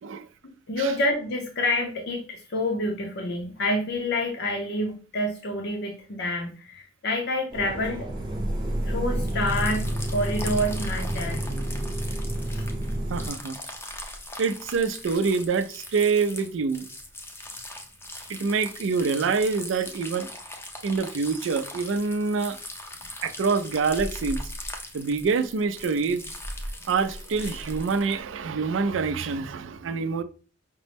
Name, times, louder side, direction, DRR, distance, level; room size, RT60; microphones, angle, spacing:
voice 1, 0.4-8.1 8.8-11.5 12.5-12.7, left 1 dB, 60° left, 0.6 m, -28 dB
sound 1, 7.5-13.3, right 1 dB, 25° right, 0.7 m, -29 dB
sound 2, 9.2-28.2, left 1 dB, 15° left, 0.5 m, -40 dB
voice 2, 13.1-13.6 14.4-16.8 18.3-20.3 20.8-22.6 23.2-24.4 24.9-26.3 26.9-30.2, right 5 dB, 75° right, 0.4 m, -26 dB
5.1 x 2.1 x 3.3 m
head